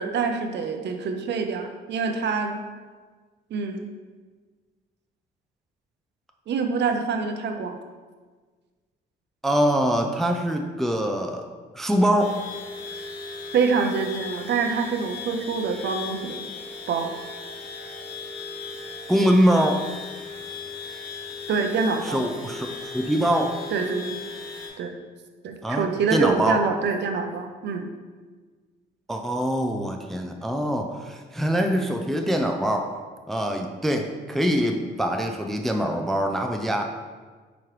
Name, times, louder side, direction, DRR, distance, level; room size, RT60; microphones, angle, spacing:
voice 1, 0.0-2.6 3.5-3.9 6.5-7.8 12.9-13.0 13.5-16.5 16.9-17.1 21.5-22.2 23.7-24.2 24.8-24.9 25.4-27.9, right 5 dB, 60° right, 5 dB, 0.5 m, -26 dB
voice 2, 9.4-11.4 11.7-12.4 19.1-19.8 22.1-22.7 22.9-23.6 25.6-26.6 29.1-32.9 33.3-36.8, equal, ahead, 3 dB, 0.3 m, -23 dB
sound 1, 12.2-24.7, left 4 dB, 75° left, 1.0 m, -37 dB
4.8 x 3.0 x 3.1 m, 1.4 s
cardioid pair, 90°, 20 cm